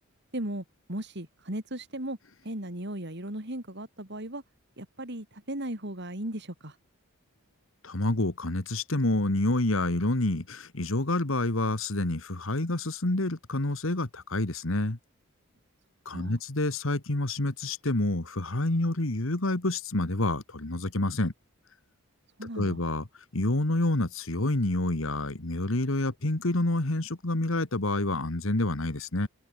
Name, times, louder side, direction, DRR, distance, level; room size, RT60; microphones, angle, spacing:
voice 1, 0.3-2.2 2.4-4.4 4.8-6.8 16.1-16.4 22.4-22.8, right 1 dB, 55° right, 4.6 m, -36 dB
voice 2, 7.8-15.0 16.1-21.3 22.6-23.0 23.3-29.3, left 2 dB, 65° left, 1.9 m, -28 dB
head